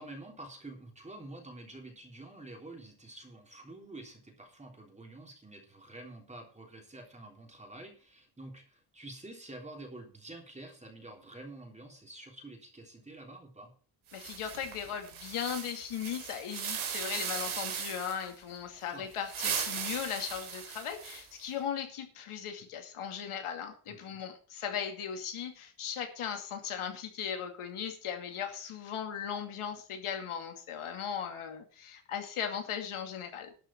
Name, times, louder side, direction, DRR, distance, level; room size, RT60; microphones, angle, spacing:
voice 1, 0.0-13.7 18.9-19.1 23.9-24.2, right 2 dB, 15° right, 2 dB, 3.4 m, -48 dB
voice 2, 14.1-33.5, left 8 dB, 80° left, 5 dB, 2.5 m, -38 dB
sound 1, 14.1-18.3 19.1-21.4, right 7 dB, 70° right, 3.1 m, -38 dB
12.0 x 6.2 x 7.4 m, 0.41 s
cardioid pair, 135°, 50 cm